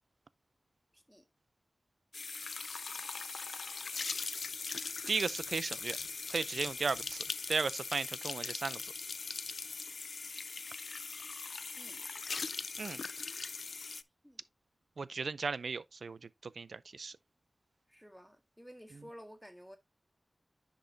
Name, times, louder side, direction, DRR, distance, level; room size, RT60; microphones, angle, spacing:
voice 1, 0.9-1.2 11.8-12.1 14.2-14.4 17.9-19.8, equal, ahead, 1.7 m, -53 dB
sound 1, 2.1-14.0, left 4 dB, 80° left, 0.4 m, -40 dB
voice 2, 5.1-6.0 6.3-8.9 12.8-13.0 15.0-17.1, right 4 dB, 90° right, 0.5 m, -36 dB
10.5 x 5.3 x 2.7 m
wide cardioid pair, 85°, 0 cm